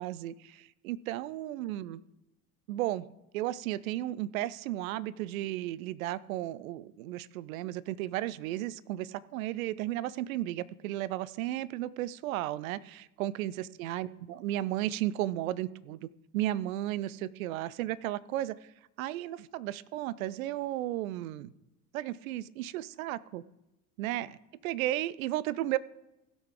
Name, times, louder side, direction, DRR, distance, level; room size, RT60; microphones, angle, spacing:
voice 1, 0.0-2.0 2.7-3.0 3.3-16.1 16.3-18.6 19.0-21.5 21.9-23.4 24.0-24.4 24.6-25.8, right 14 dB, 60° right, 19 dB, 0.6 m, -34 dB
16.5 x 6.0 x 3.8 m, 0.93 s
figure-of-eight pair, 75°, 46 cm